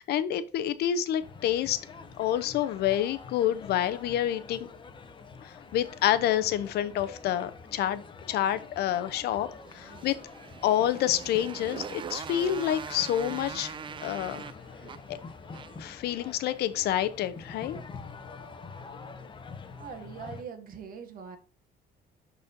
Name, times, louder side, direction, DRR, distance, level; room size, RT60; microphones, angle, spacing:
voice 1, 0.0-1.8 2.2-4.7 5.4-8.0 8.3-9.5 9.7-10.2 10.6-13.7 14.0-14.5 15.1-15.2 15.8-17.8, left 11 dB, 70° left, 0.7 m, -28 dB
sound 1, 1.2-20.4, left 4 dB, 30° left, 0.9 m, -46 dB
Motorcycle, 9.6-16.0, right 7 dB, 30° right, 0.4 m, -42 dB
voice 2, 19.8-21.4, right 6 dB, 60° right, 1.6 m, -42 dB
12.0 x 4.2 x 2.7 m
cardioid pair, 110°, 17 cm